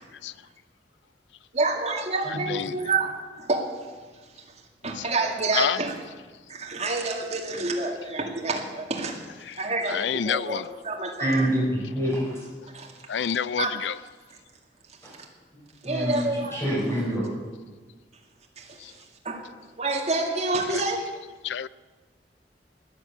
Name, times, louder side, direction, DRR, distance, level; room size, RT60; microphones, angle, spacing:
voice 1, 1.5-3.7 4.8-6.0 6.5-9.2 9.6-11.5 12.7-12.9 13.6-13.7 15.8-16.6 18.6-18.8 19.2-19.5 19.8-21.1, right 3 dB, 40° right, 2.2 m, -28 dB
voice 2, 9.9-10.6 13.1-14.0 18.8-18.9 21.4-21.7, left 8 dB, 80° left, 0.4 m, -28 dB
voice 3, 11.2-12.4 15.0-15.1 15.8-17.2, equal, 15° left, 5.4 m, -26 dB
13.5 x 9.8 x 8.5 m
head